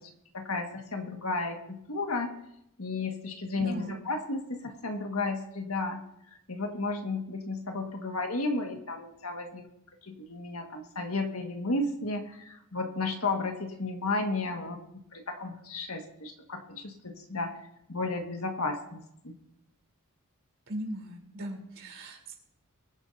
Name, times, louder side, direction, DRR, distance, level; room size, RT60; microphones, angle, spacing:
voice 1, 0.3-2.3 2.8-6.0 6.5-9.6 10.0-14.8 15.1-17.5 17.9-19.3, left 3 dB, 75° left, 3 dB, 1.8 m, -33 dB
voice 2, 3.5-4.0 20.7-22.4, right 1 dB, 60° right, 0 dB, 3.8 m, -38 dB
23.5 x 9.4 x 2.8 m, 0.79 s
head